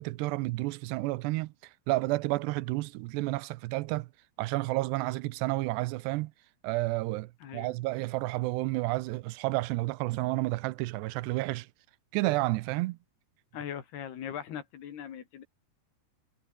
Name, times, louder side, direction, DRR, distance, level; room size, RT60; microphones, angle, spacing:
voice 1, 0.0-1.5 1.9-4.1 4.4-6.3 6.6-11.7 12.1-13.0, right 20 dB, 85° right, 2.8 m, -30 dB
voice 2, 7.4-7.7 13.5-15.4, left 9 dB, 70° left, 4.6 m, -40 dB
omnidirectional pair, 4.8 m